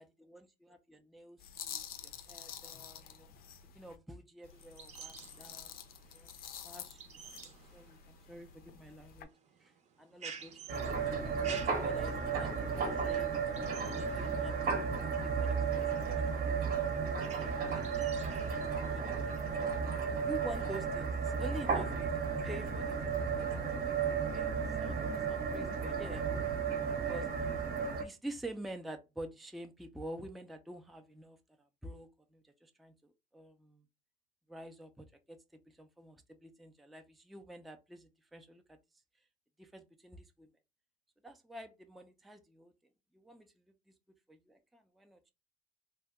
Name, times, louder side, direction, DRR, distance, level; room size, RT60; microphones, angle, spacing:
voice 1, 0.0-3.3 3.7-5.8 6.1-9.3 9.6-9.7 10.0-11.0 11.5-14.6 15.2-17.5 17.9-19.0 19.5-19.8 20.2-22.1 22.4-23.0 23.5-24.5 24.8-26.2 27.1-27.3 28.0-33.8 34.5-35.4 35.8-36.2 36.4-38.6 39.6-40.5 41.2-42.7 43.1-43.5 44.3-45.2, right 1 dB, ahead, 0.4 m, -49 dB
sound 1, 1.4-4.0 4.4-9.3, left 9 dB, 60° left, 0.4 m, -49 dB
sound 2, 4.5-19.8, right 6 dB, 45° right, 0.6 m, -53 dB
sound 3, 10.7-28.0, right 6 dB, 65° right, 0.9 m, -34 dB
2.7 x 2.1 x 3.4 m
cardioid pair, 110°, 17 cm